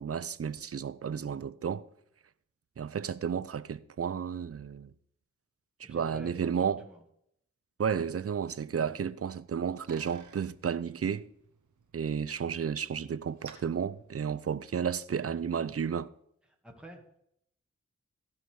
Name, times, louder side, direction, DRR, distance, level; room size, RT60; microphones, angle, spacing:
voice 1, 0.0-1.8 2.8-4.9 5.8-6.8 7.8-11.3 11.9-16.1, right 7 dB, 50° right, 0.6 m, -32 dB
voice 2, 5.8-7.0 16.6-17.2, right 1 dB, 5° right, 2.2 m, -49 dB
Bicycle, 9.4-14.9, right 6 dB, 85° right, 1.3 m, -57 dB
15.5 x 5.8 x 4.8 m
cardioid pair, 50°, 30 cm